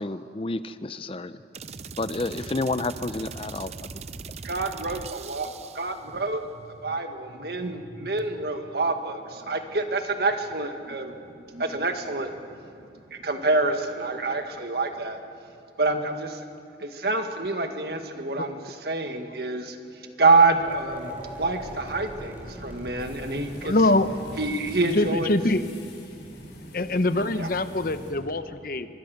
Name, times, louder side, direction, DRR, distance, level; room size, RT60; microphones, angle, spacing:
voice 1, 0.0-1.4 2.0-3.7, left 2 dB, 30° left, 13 dB, 0.5 m, -30 dB
sound 1, 1.5-6.0, right 5 dB, 40° right, 0.6 m, -40 dB
voice 2, 4.4-6.5 6.8-11.1 11.5-12.3 13.1-15.2 15.8-16.4 16.8-19.8 20.2-21.1 21.4-23.7 24.4-25.4 27.3-27.5, right 3 dB, 60° right, 6 dB, 1.8 m, -26 dB
sound 2, 20.4-26.4, right 1 dB, 10° right, 5.4 m, -42 dB
sound 3, 23.0-28.1, left 1 dB, 90° left, 5.1 m, -45 dB
voice 3, 23.6-24.1 24.8-25.6 26.7-28.9, left 2 dB, 55° left, 11 dB, 0.9 m, -24 dB
24.0 x 21.5 x 6.6 m, 2.6 s
head